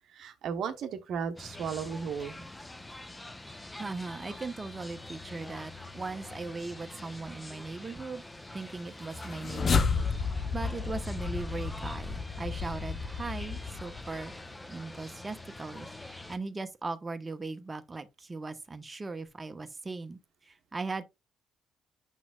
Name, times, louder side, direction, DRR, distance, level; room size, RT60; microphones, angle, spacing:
voice 1, 0.1-2.5, right 7 dB, 60° right, 0.9 m, -35 dB
sound 1, 1.4-16.4, left 2 dB, 15° left, 0.9 m, -45 dB
voice 2, 3.8-8.2 8.5-9.9 10.5-14.3 14.7-15.9 16.3-21.0, right 3 dB, 25° right, 0.9 m, -39 dB
sound 2, 9.0-14.3, left 5 dB, 40° left, 0.8 m, -32 dB
7.3 x 6.1 x 2.3 m
hypercardioid pair, 45°, 0 cm